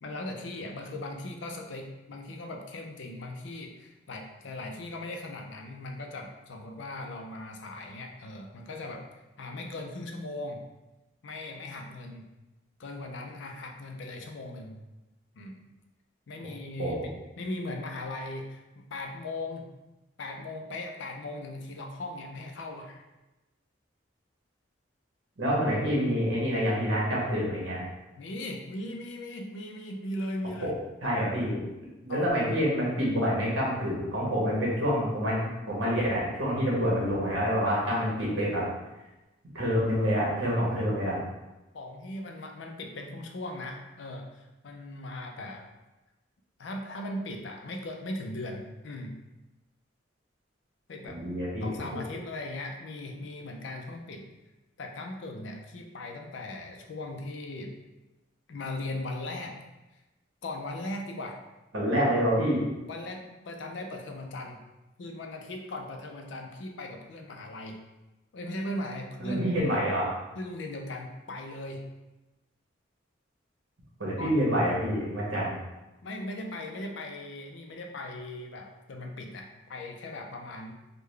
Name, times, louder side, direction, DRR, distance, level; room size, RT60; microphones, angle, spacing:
voice 1, 0.0-9.1 9.4-10.6 11.2-12.2 12.8-14.8 15.4-15.6 16.3-19.7 20.2-23.0 28.2-30.8 32.1-32.4 41.7-45.7 46.6-49.2 50.9-51.2 51.6-54.3 54.8-57.8 58.5-59.6 60.4-61.4 62.0-62.1 62.9-64.6 65.0-67.8 68.3-69.9 70.4-71.9 74.2-74.3 76.0-80.7, left 2 dB, 65° left, 3 dB, 0.4 m, -38 dB
voice 2, 25.4-27.8 30.6-30.7 31.0-31.6 32.0-38.6 39.5-41.2 51.0-51.9 61.7-62.6 69.2-70.1 74.0-75.6, equal, 70° right, -5 dB, 1.2 m, -27 dB
3.6 x 2.2 x 3.2 m, 1.1 s
head